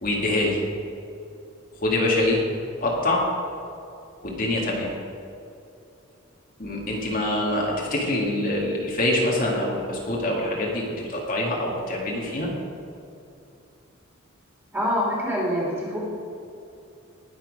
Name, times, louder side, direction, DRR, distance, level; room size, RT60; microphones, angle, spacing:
voice 1, 0.0-0.6 1.8-2.4 2.8-3.2 4.2-4.9 6.6-12.5, left 1 dB, 40° left, -3 dB, 1.9 m, -25 dB
voice 2, 14.7-16.0, equal, 10° right, -5 dB, 3.1 m, -25 dB
19.5 x 7.4 x 5.2 m, 2.7 s
head